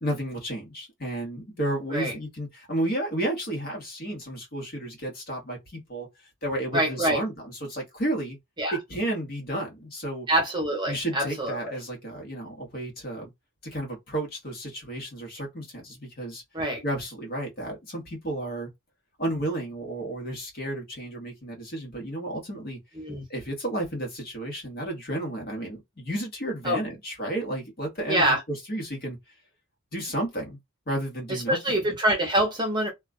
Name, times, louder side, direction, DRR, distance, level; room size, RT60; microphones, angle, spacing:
voice 1, 0.0-6.1 6.4-8.4 8.7-10.3 10.9-13.3 13.6-16.4 16.8-18.7 19.2-22.8 23.3-29.2 29.9-30.6 30.9-31.8, right 1 dB, 45° left, 1.1 m, -32 dB
voice 2, 6.7-7.2 8.6-8.8 10.3-11.7 16.5-16.8 23.0-23.2 26.6-26.8 28.1-28.4 31.3-32.9, right 1 dB, 20° right, 0.8 m, -25 dB
2.4 x 2.3 x 2.3 m
head